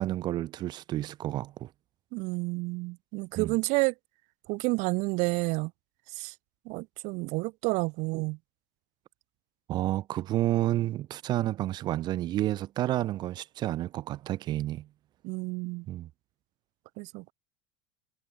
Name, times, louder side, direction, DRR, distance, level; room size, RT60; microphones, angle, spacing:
voice 1, 0.0-1.7 3.3-3.6 9.7-14.9 15.9-16.1, right 14 dB, 25° right, 0.4 m, -30 dB
voice 2, 2.1-3.9 4.5-5.7 6.1-6.3 6.7-8.4 15.2-15.8 17.0-17.3, right 25 dB, 45° right, 1.1 m, -30 dB
cardioid pair, 175°, 17 cm